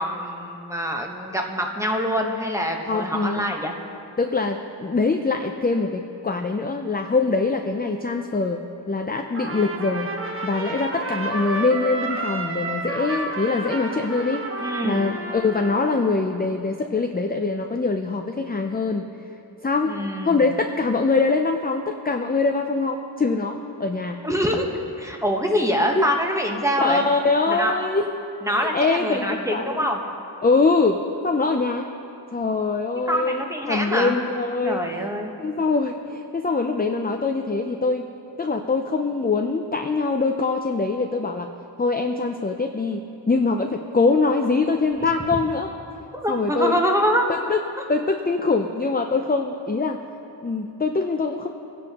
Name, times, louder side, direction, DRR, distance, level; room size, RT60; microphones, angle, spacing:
voice 1, 0.0-3.7 14.6-15.1 19.9-20.4 24.2-24.7 25.0-27.0 27.5-27.7 28.4-30.0 33.1-34.1 34.6-35.3 46.1-47.3, equal, 5° right, 1 dB, 1.1 m, -24 dB
voice 2, 2.9-3.5 4.2-10.1 10.4-14.5 14.8-19.1 19.6-20.0 20.2-24.2 26.0-26.1 26.8-28.1 28.5-29.9 30.4-31.9 32.3-34.9 35.4-38.1 38.4-41.5 41.8-43.0 43.3-45.7 46.3-46.8 47.3-47.6 47.9-50.0 50.4-51.5, left 3 dB, 20° left, 4 dB, 0.5 m, -23 dB
Trumpet, 9.3-16.1, right 2 dB, 30° right, 1.2 m, -30 dB
20.0 x 10.5 x 2.9 m, 2.9 s
wide cardioid pair, 60°, 46 cm